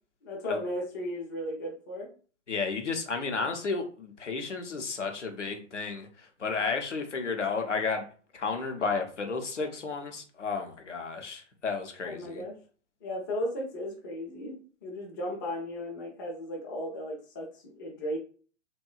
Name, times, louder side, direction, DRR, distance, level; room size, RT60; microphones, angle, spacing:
voice 1, 0.2-2.1 12.0-12.6 13.0-18.2, left 1 dB, 20° left, -2 dB, 0.3 m, -35 dB
voice 2, 2.5-8.1 8.3-12.4, left 4 dB, 80° left, 4 dB, 0.7 m, -32 dB
2.8 x 2.1 x 2.3 m, 0.40 s
figure-of-eight pair, 110°, 36 cm